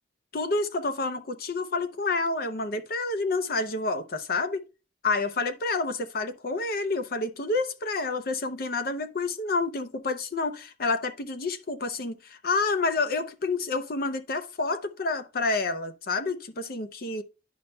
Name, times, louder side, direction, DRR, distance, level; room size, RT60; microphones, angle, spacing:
voice 1, 0.3-4.6 5.0-17.2, left 3 dB, 55° left, 0.6 m, -29 dB
11.0 x 5.3 x 2.2 m
head